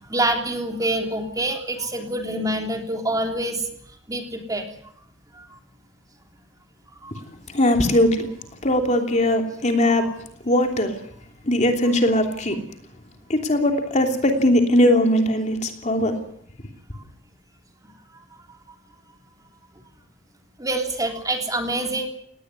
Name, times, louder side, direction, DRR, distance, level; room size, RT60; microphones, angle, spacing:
voice 1, 0.1-3.6 4.1-4.6 7.0-7.1 10.0-10.1 20.6-22.1, right 1 dB, 20° right, 3 dB, 3.3 m, -26 dB
voice 2, 7.5-8.3 8.6-10.0 10.5-11.0 11.5-12.6 13.3-16.1, left 1 dB, 40° left, 4 dB, 3.1 m, -19 dB
19.0 x 17.5 x 9.7 m, 0.70 s
head